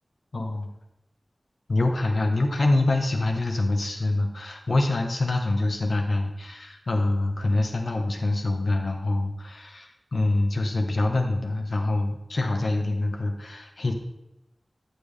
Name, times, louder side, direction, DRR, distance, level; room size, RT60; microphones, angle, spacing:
voice 1, 0.3-0.7 1.7-13.9, left 2 dB, 75° left, 3 dB, 1.1 m, -25 dB
9.2 x 6.9 x 3.4 m, 0.91 s
wide cardioid pair, 60°, 0 cm